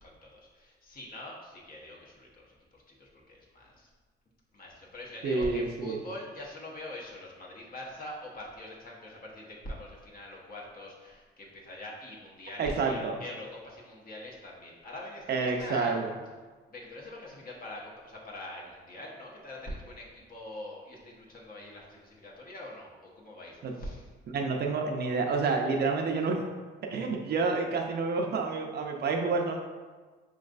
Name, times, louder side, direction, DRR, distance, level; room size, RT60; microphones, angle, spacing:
voice 1, 0.0-3.9 4.5-16.0 16.7-24.0, left 1 dB, 45° left, -3 dB, 1.1 m, -44 dB
voice 2, 5.2-6.0 12.6-13.2 15.3-16.1 23.6-23.7 24.3-26.4 26.9-29.6, right 4 dB, 55° right, 2 dB, 0.6 m, -29 dB
5.2 x 3.1 x 2.5 m, 1.4 s
cardioid pair, 90°, 20 cm